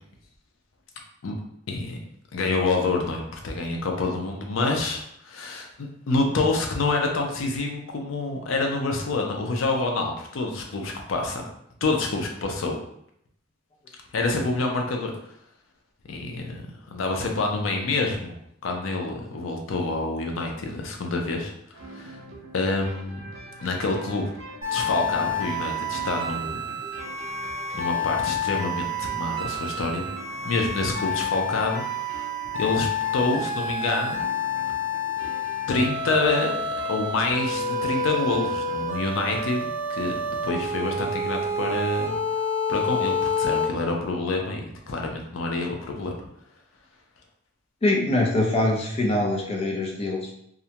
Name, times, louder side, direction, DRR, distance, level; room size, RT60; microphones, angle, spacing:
voice 1, 1.7-2.0 2.3-11.5 11.8-12.8 14.1-15.1 16.1-16.6 16.9-18.3 18.6-22.2 22.5-23.2 23.6-24.3 24.7-26.6 27.7-30.0 30.4-32.3 32.5-34.2 35.2-35.3 35.7-42.1 42.7-46.3, left 3 dB, 85° left, 2 dB, 0.5 m, -27 dB
sound 1, 21.7-39.4, right 1 dB, 90° right, 0.5 m, -43 dB
sound 2, 24.6-43.7, left 2 dB, 35° right, 0.8 m, -29 dB
voice 2, 47.8-50.3, left 1 dB, 30° left, -1 dB, 0.4 m, -23 dB
2.4 x 2.1 x 2.8 m, 0.72 s
head